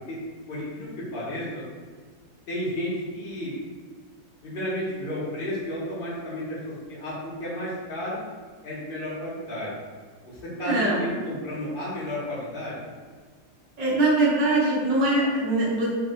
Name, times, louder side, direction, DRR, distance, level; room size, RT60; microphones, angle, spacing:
voice 1, 0.5-1.6 2.5-3.5 4.4-7.1 7.4-8.2 8.6-9.7 10.6-12.7, left 1 dB, 80° left, -7 dB, 0.5 m, -32 dB
voice 2, 10.6-11.0 13.8-15.9, right 2 dB, 55° right, -7 dB, 1.0 m, -22 dB
3.4 x 2.5 x 2.5 m, 1.5 s
omnidirectional pair, 2.0 m